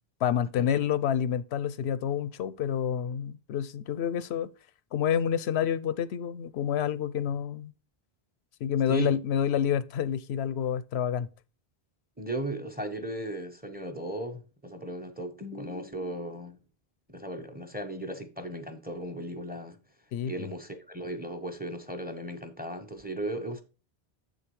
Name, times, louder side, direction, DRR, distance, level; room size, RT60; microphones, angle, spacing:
voice 1, 0.2-4.5 4.9-7.7 8.6-11.3 20.1-20.5, left 9 dB, 85° left, 0.8 m, -28 dB
voice 2, 12.2-16.6 17.1-19.8 20.2-23.6, right 1 dB, 10° right, 0.9 m, -36 dB
7.5 x 6.6 x 3.1 m
omnidirectional pair, 1.1 m